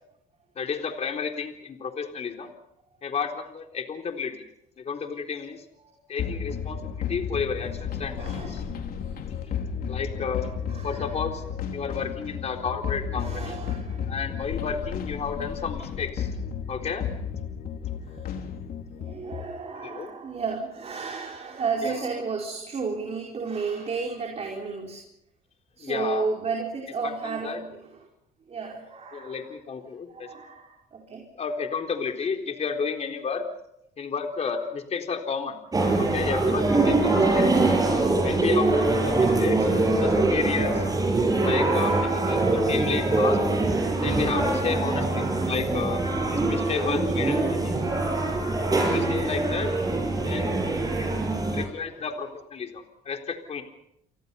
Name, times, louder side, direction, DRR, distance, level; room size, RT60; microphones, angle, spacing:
voice 1, 0.6-2.5 3.0-4.3 4.8-5.6 6.1-8.6 9.9-10.5 10.8-11.4 11.7-13.6 14.1-16.3 16.7-17.1 19.7-20.1 21.8-21.9 25.8-26.3 27.0-27.6 29.1-30.3 31.4-33.4 34.0-35.6 36.0-37.5 38.2-40.8 41.4-43.4 44.0-46.0 46.3-47.8 48.7-49.7 50.2-50.6 51.0-51.1 51.5-53.6, left 5 dB, 40° left, 4 dB, 4.0 m, -31 dB
sound 1, 6.2-19.5, left 7 dB, 60° left, 3.9 m, -33 dB
voice 2, 8.1-8.6 9.0-9.1 10.7-11.2 13.2-14.1 18.1-18.2 18.9-25.1 25.8-27.9 28.5-29.5 30.1-31.3 36.0-36.4 39.6-39.7 41.5-42.7 47.9-49.0 49.5-49.9 51.1-52.1, right 4 dB, 40° right, 0 dB, 4.8 m, -34 dB
sound 2, 35.7-51.7, right 2 dB, 20° right, 7.0 m, -23 dB
30.0 x 24.0 x 5.7 m, 0.80 s
cardioid pair, 110°, 17 cm